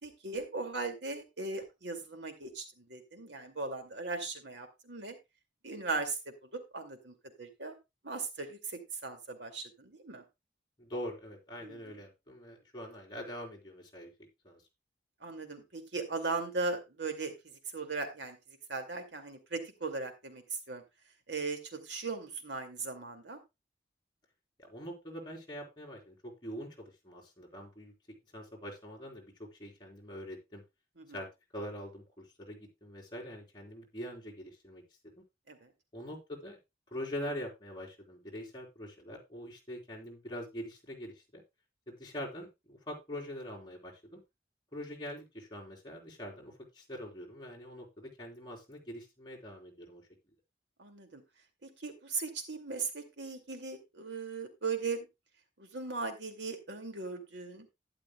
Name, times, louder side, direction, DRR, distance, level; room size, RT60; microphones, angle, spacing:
voice 1, 0.0-5.2 5.6-7.7 8.0-10.2 11.6-12.0 15.2-18.4 18.7-20.8 21.3-23.4 31.0-31.2 35.5-35.7 50.8-51.2 51.6-55.1 55.6-57.7, right 4 dB, 75° right, 5 dB, 2.4 m, -38 dB
voice 2, 10.8-14.1 14.4-14.6 24.6-27.9 28.3-30.6 31.1-31.3 31.5-34.8 35.2-35.3 35.9-36.6 36.9-41.4 41.9-44.2 44.7-50.0, equal, 25° left, -3 dB, 3.8 m, -44 dB
12.0 x 11.0 x 2.3 m, 0.23 s
head